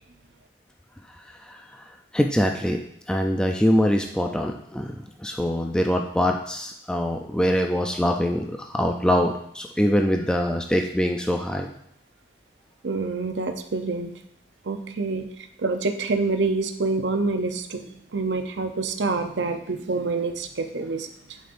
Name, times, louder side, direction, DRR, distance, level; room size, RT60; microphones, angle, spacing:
voice 1, 2.1-2.8 3.1-4.9 5.2-11.7, equal, 5° left, 2 dB, 0.4 m, -23 dB
voice 2, 12.8-14.1 14.6-15.3 15.6-21.4, right 3 dB, 85° right, 7 dB, 0.7 m, -27 dB
11.5 x 5.2 x 2.6 m, 0.72 s
head